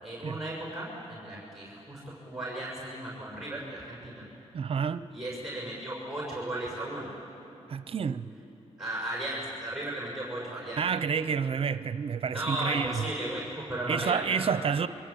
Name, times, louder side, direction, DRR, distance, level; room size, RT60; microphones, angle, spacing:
voice 1, 0.0-4.2 5.1-7.1 8.8-10.8 12.3-14.8, right 1 dB, 5° right, 6.6 m, -35 dB
voice 2, 4.5-5.1 7.7-8.3 10.8-13.1 13.9-14.9, right 6 dB, 55° right, 0.8 m, -29 dB
28.5 x 23.0 x 8.7 m
cardioid pair, 105°, 12 cm